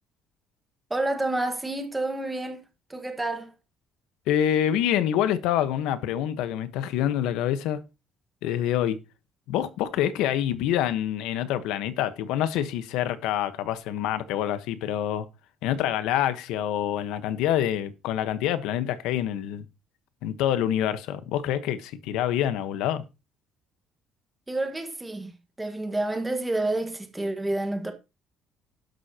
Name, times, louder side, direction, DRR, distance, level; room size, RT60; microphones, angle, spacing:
voice 1, 0.9-2.6 2.9-3.5 24.5-27.9, right 2 dB, 10° right, 1.6 m, -29 dB
voice 2, 4.3-7.8 8.4-9.0 9.5-15.3 15.6-19.6 20.2-23.0, left 11 dB, 80° left, 1.2 m, -26 dB
11.5 x 11.0 x 2.9 m
cardioid pair, 165°, 0 cm